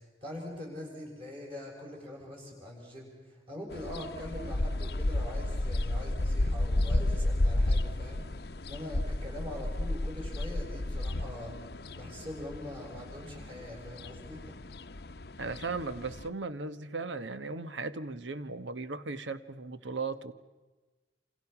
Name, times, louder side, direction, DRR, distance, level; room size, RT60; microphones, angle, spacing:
voice 1, 0.0-11.5 12.0-14.6, left 1 dB, 30° right, -2 dB, 7.3 m, -43 dB
sound 1, 3.7-16.3, left 1 dB, 55° left, 0.8 m, -32 dB
voice 2, 15.4-20.3, right 3 dB, 85° right, 11 dB, 1.2 m, -37 dB
28.0 x 27.5 x 6.0 m, 1.3 s
head